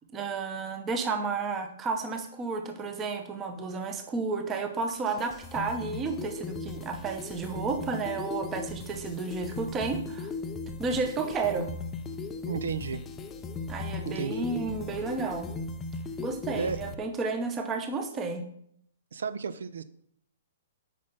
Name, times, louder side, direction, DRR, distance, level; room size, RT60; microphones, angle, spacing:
voice 1, 0.1-10.3 10.8-11.7 13.7-15.5 16.2-18.4, right 4 dB, 15° right, 6 dB, 0.8 m, -32 dB
sound 1, 4.9-16.9, left 3 dB, 10° left, 0.4 m, -38 dB
voice 2, 12.5-13.0 14.0-14.5 16.6-16.8 19.1-19.8, right 6 dB, 85° right, 14 dB, 0.8 m, -33 dB
8.5 x 5.7 x 5.6 m, 0.69 s
hypercardioid pair, 170°, 0 cm